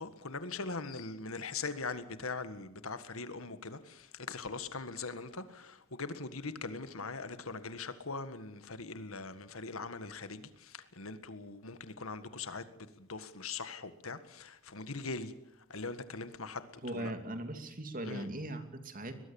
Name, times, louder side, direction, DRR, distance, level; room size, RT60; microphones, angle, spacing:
voice 1, 0.0-15.3 15.7-17.1 18.1-18.3, left 4 dB, 85° left, 1.7 m, -41 dB
voice 2, 16.8-19.2, right 1 dB, 40° right, 2.6 m, -39 dB
23.0 x 21.0 x 7.2 m
head